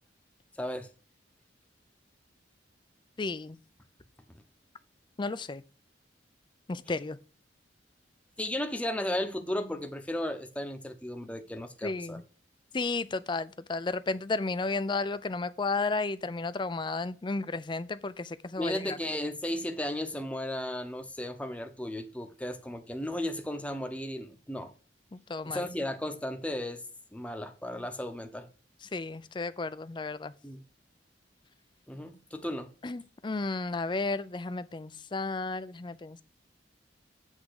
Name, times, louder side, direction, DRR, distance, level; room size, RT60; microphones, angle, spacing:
voice 1, 0.6-0.9 8.4-12.2 18.6-24.7 25.4-26.8 27.1-28.5 30.4-30.6 31.9-32.7, left 1 dB, 5° left, 0.9 m, -35 dB
voice 2, 3.2-3.6 5.2-5.6 6.7-7.2 11.8-12.2 12.7-19.0 25.1-25.7 28.8-30.3 32.8-36.2, left 3 dB, 25° left, 0.4 m, -33 dB
8.1 x 3.6 x 6.5 m
head